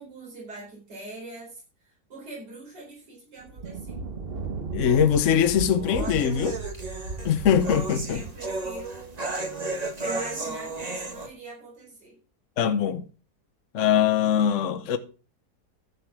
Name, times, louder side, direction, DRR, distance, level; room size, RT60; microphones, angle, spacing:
voice 1, 0.0-4.0 8.1-9.3 10.0-12.2, right 2 dB, 80° right, 5.0 m, -43 dB
Thunder, 3.4-10.1, right 3 dB, 40° right, 1.0 m, -37 dB
voice 2, 4.7-6.6 7.2-8.2 12.6-13.0 13.7-15.0, left 8 dB, 55° left, 1.1 m, -22 dB
sound 1, 4.9-11.3, right 2 dB, 25° right, 1.4 m, -34 dB
11.5 x 6.7 x 5.9 m
omnidirectional pair, 1.8 m